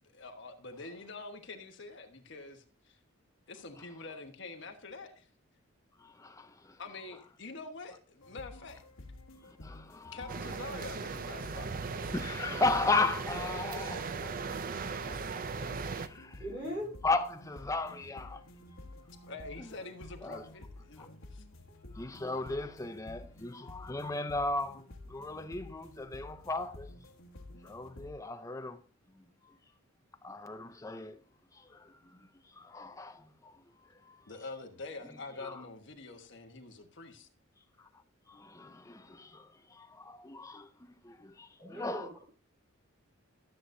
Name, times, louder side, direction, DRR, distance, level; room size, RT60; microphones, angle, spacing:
voice 1, 0.0-3.0 3.5-5.3 6.8-8.8 10.1-11.8 19.2-21.4 34.3-37.3, left 3 dB, 60° left, 1.3 m, -46 dB
voice 2, 6.0-6.8 9.4-10.2 12.1-14.3 15.1-15.6 15.9-16.4 17.0-18.4 20.2-20.4 22.0-24.8 25.1-26.9 27.6-28.8 30.2-31.2 31.7-32.2 32.6-33.5 34.1-34.2 35.4-35.5 38.3-40.7 41.0-42.1, left 3 dB, 15° left, 0.6 m, -36 dB
sound 1, 8.2-28.1, left 1 dB, 85° left, 1.3 m, -51 dB
sound 2, 10.3-16.1, right 4 dB, 40° right, 0.5 m, -38 dB
voice 3, 16.1-17.0 41.6-42.2, equal, 10° right, 4.1 m, -40 dB
13.0 x 7.7 x 2.7 m
head